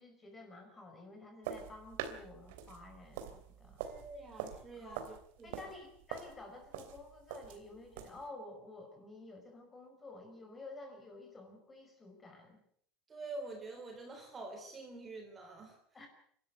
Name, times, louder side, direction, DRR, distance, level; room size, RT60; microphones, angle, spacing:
voice 1, 0.0-3.9 4.7-5.1 5.4-12.6 15.9-16.1, left 2 dB, 15° left, 4 dB, 5.2 m, -51 dB
sound 1, 1.4-8.3, right 9 dB, 90° right, 2.9 m, -45 dB
voice 2, 3.8-5.7 13.1-15.8, right 2 dB, 20° right, 4 dB, 3.7 m, -47 dB
26.5 x 13.0 x 8.1 m, 0.64 s
cardioid pair, 155°, 0 cm